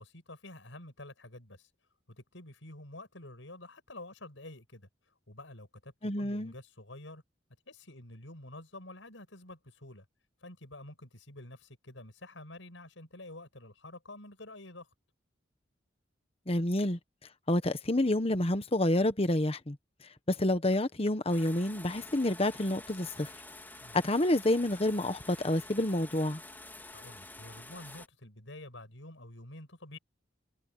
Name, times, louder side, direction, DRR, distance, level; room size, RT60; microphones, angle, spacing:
voice 1, 0.0-1.7 2.1-4.9 5.3-7.2 7.7-10.1 10.4-14.9 23.8-24.0 26.9-30.0, left 2 dB, 85° left, 6.3 m, -49 dB
voice 2, 6.0-6.5 16.5-17.0 17.5-19.8 20.3-23.3 23.9-26.4, left 1 dB, 30° left, 1.3 m, -28 dB
sound 1, 21.3-28.1, left 2 dB, 10° left, 3.4 m, -49 dB
head